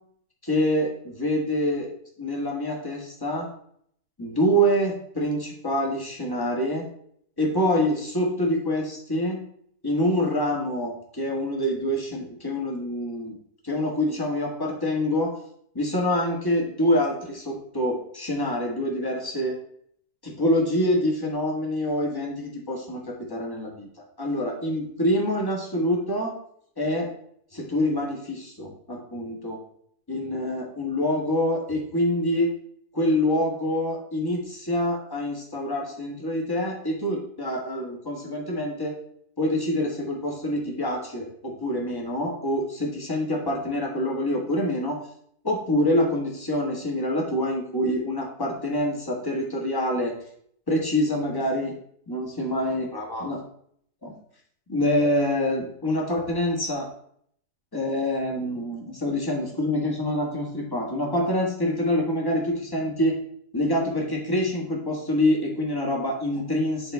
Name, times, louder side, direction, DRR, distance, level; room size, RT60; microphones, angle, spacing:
voice 1, 0.4-1.9 2.2-3.5 4.2-6.9 7.4-9.4 9.8-13.3 13.6-15.3 15.7-19.5 20.2-23.9 24.2-26.3 26.8-27.1 27.5-29.6 30.1-32.5 32.9-38.9 39.4-45.0 45.4-50.1 50.7-51.7 52.1-53.4 54.0-54.1 54.7-56.9 57.7-63.1 63.5-66.9, left 1 dB, 15° left, -1 dB, 1.4 m, -26 dB
11.0 x 3.8 x 3.4 m, 0.66 s
omnidirectional pair, 1.7 m